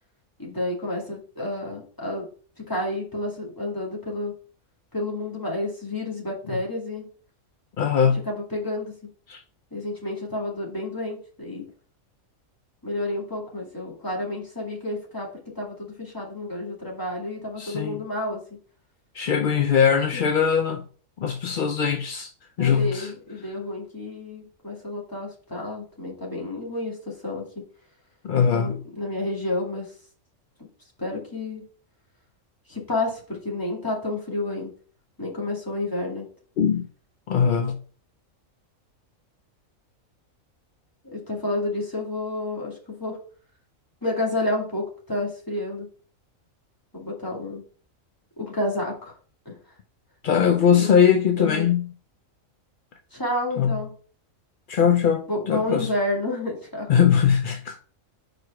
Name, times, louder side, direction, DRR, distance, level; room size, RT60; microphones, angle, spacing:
voice 1, 0.4-2.3 2.6-4.3 4.9-7.1 8.3-8.9 9.7-11.7 12.8-15.3 15.5-18.4 20.1-20.3 22.6-27.5 28.5-29.9 31.0-31.6 32.7-34.7 35.2-36.3 41.0-43.2 44.0-45.9 46.9-47.6 48.4-49.2 49.5-49.6 50.6-50.9 51.4-51.7 53.1-53.9 55.3-56.9, left 1 dB, 15° left, 2.3 m, -30 dB
voice 2, 7.8-8.2 9.3-9.4 17.6-18.0 19.1-20.8 21.2-22.3 22.6-23.1 28.2-28.8 36.6-36.9 37.3-37.8 50.2-51.9 53.6-53.8 54.7-55.9 56.9-57.8, left 7 dB, 60° left, 0.5 m, -21 dB
4.8 x 4.7 x 4.7 m
omnidirectional pair, 1.4 m